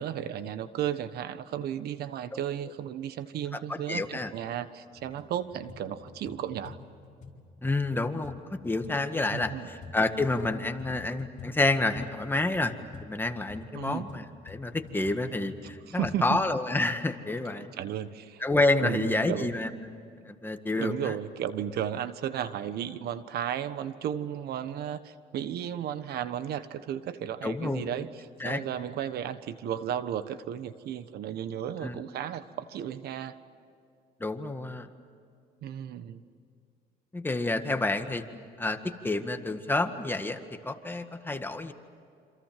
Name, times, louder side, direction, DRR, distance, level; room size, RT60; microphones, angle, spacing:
voice 1, 0.0-6.8 9.3-9.7 13.7-14.1 15.9-16.4 17.6-18.4 18.8-19.5 20.7-33.4 35.6-36.2, right 10 dB, 70° right, 12 dB, 1.4 m, -34 dB
voice 2, 3.5-4.3 7.6-12.7 13.0-17.7 18.4-19.9 20.3-21.1 27.4-27.9 28.4-28.6 31.8-32.0 34.2-34.9 37.1-38.3 38.6-41.7, left 2 dB, 10° left, 7 dB, 1.8 m, -29 dB
sound 1, 4.9-5.2 5.5-10.5 10.8-16.2, left 5 dB, 50° left, 4.5 m, -48 dB
28.0 x 27.0 x 7.6 m, 2.4 s
cardioid pair, 110°, 17 cm